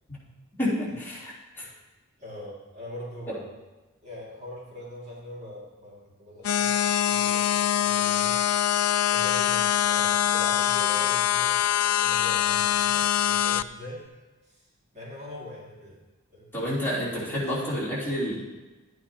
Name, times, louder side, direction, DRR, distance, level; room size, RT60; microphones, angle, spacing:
voice 1, 0.6-1.7 16.5-18.4, equal, 10° left, -8 dB, 3.0 m, -29 dB
voice 2, 2.2-3.5 4.0-8.4 9.1-14.1 14.5-14.6 14.9-16.0 16.3-16.5 17.1-17.8, left 1 dB, 30° right, -6 dB, 2.2 m, -42 dB
sound 1, 6.4-13.6, left 10 dB, 90° left, 0.4 m, -24 dB
12.0 x 9.2 x 2.8 m, 1.2 s
head